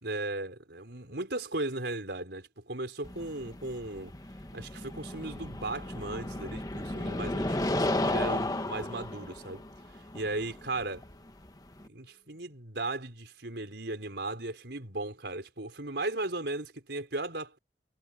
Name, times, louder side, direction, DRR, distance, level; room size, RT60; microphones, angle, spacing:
voice 1, 0.0-4.1 4.5-9.6 9.9-11.1 11.9-17.6, right 2 dB, 70° right, 4.5 m, -36 dB
sound 1, 3.0-11.9, left 1 dB, 20° left, 1.2 m, -34 dB
sound 2, 5.7-12.6, left 1 dB, 45° left, 7.6 m, -60 dB
head